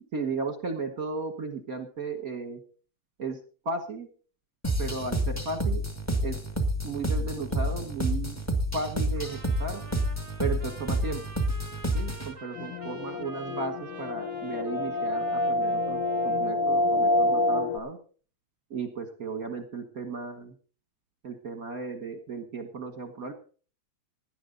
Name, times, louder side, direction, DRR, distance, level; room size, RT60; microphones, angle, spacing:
voice 1, 0.1-2.6 3.2-3.4 3.6-4.1 4.8-5.8 6.2-6.4 6.8-8.4 8.7-9.8 10.4-11.2 11.9-18.0 18.7-20.5 21.2-23.3, right 3 dB, 45° right, 7 dB, 1.2 m, -35 dB
sound 1, 4.6-12.3, right 1 dB, 10° left, 0.8 m, -29 dB
Trumpet, 9.2-16.5, right 3 dB, 15° right, 1.1 m, -47 dB
sound 2, 12.6-17.8, left 1 dB, 60° left, 1.6 m, -27 dB
17.5 x 11.5 x 3.9 m, 0.39 s
omnidirectional pair, 3.3 m